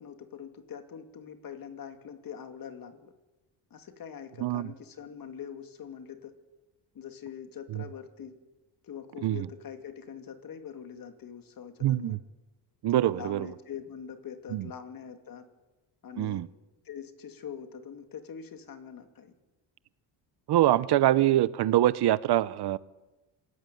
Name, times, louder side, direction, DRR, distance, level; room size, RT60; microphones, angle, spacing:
voice 1, 0.0-3.1 3.7-6.3 6.9-8.4 8.8-12.2 12.9-15.4 16.0-16.5 16.8-19.3, left 8 dB, 45° left, 8 dB, 2.6 m, -43 dB
voice 2, 11.8-12.2 12.8-13.5 14.5-14.6 16.2-16.5 20.5-22.8, right 14 dB, 55° right, 18 dB, 0.7 m, -24 dB
27.0 x 15.0 x 9.1 m, 1.1 s
cardioid pair, 140°, 48 cm